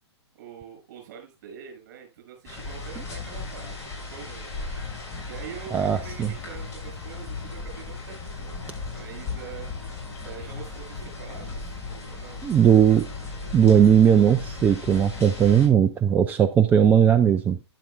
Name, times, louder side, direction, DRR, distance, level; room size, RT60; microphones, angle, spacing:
voice 1, 0.3-4.5 5.3-8.6 8.9-9.7 10.2-11.7 12.0-12.4, right 8 dB, 40° right, 3 dB, 7.3 m, -44 dB
sound 1, 2.4-15.7, left 3 dB, 20° left, 7.0 m, -36 dB
voice 2, 5.7-6.3 12.4-13.1 13.5-17.6, right 8 dB, 10° right, 9 dB, 0.5 m, -18 dB
12.0 x 11.0 x 2.5 m, 0.26 s
figure-of-eight pair, 120°, 15 cm